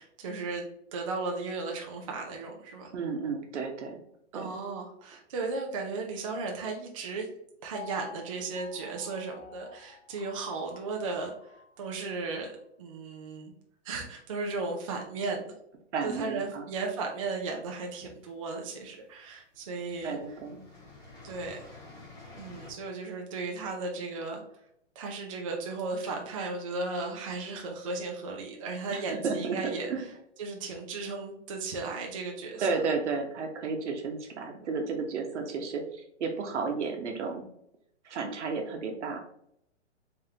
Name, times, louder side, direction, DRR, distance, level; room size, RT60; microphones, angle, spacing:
voice 1, 0.0-2.9 4.3-7.3 7.6-11.3 11.8-13.5 13.8-15.5 16.0-20.2 21.2-21.6 22.3-24.4 25.0-29.9 30.4-32.8, right 3 dB, 30° right, 1 dB, 0.4 m, -35 dB
voice 2, 2.9-4.0 4.3-4.6 15.9-16.6 20.0-20.6 28.9-30.1 32.6-37.4 38.0-39.2, right 4 dB, 70° right, 4 dB, 1.0 m, -33 dB
Piano, 7.7-11.8 12.3-12.4, left 7 dB, 35° left, 0.9 m, -49 dB
sound 1, 17.3-18.2 19.1-19.2 19.5-22.7, left 3 dB, 10° left, 1.0 m, -50 dB
3.5 x 3.5 x 2.8 m, 0.75 s
hypercardioid pair, 155°, 36 cm